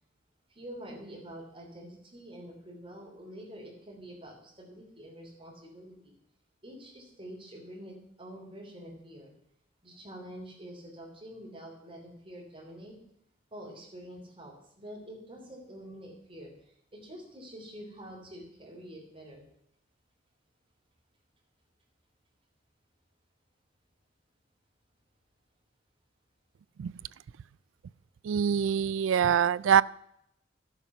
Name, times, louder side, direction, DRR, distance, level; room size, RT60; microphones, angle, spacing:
voice 1, 0.5-6.1 6.6-9.3 9.8-12.9 13.5-16.5 16.9-19.4, equal, 30° right, -1 dB, 3.3 m, -46 dB
voice 2, 28.2-29.8, right 8 dB, 85° right, 20 dB, 0.3 m, -24 dB
12.5 x 7.2 x 5.8 m, 0.75 s
head